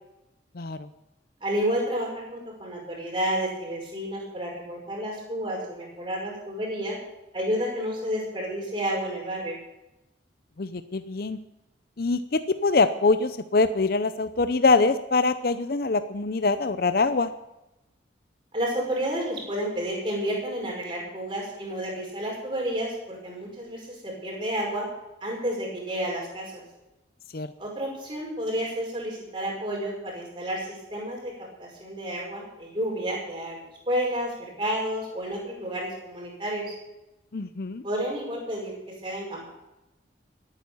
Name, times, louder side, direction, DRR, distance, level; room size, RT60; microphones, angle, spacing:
voice 1, 0.5-0.9 10.6-11.4 12.0-17.3 27.3-27.5 37.3-37.8, left 3 dB, 50° left, 11 dB, 0.6 m, -24 dB
voice 2, 1.4-7.0 7.3-9.6 18.5-24.9 25.2-26.6 27.6-31.3 31.6-36.7 37.8-38.7 39.0-39.5, equal, 25° right, -2 dB, 5.2 m, -30 dB
18.0 x 9.1 x 7.0 m, 0.95 s
head